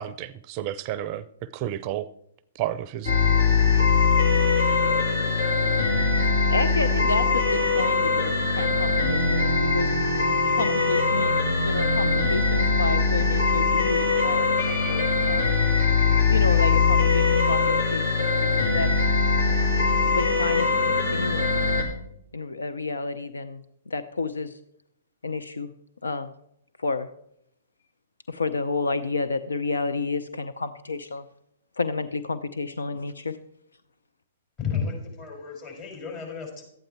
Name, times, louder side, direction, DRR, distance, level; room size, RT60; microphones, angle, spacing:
voice 1, 0.0-2.1 2.6-3.1, right 12 dB, 35° right, 17 dB, 0.5 m, -31 dB
sound 1, 3.0-21.8, left 4 dB, 70° left, 2.7 m, -22 dB
voice 2, 6.2-9.9 10.5-11.3 11.6-15.5 16.3-18.0 18.4-18.9 20.1-21.5 22.3-24.6 25.2-25.7 26.0-26.3 26.8-27.1 28.3-31.2 31.8-33.4, left 3 dB, 85° left, 11 dB, 0.6 m, -30 dB
voice 3, 34.6-36.6, left 6 dB, 35° left, 0 dB, 4.7 m, -32 dB
12.5 x 9.1 x 4.4 m, 0.76 s
hypercardioid pair, 120°, 0 cm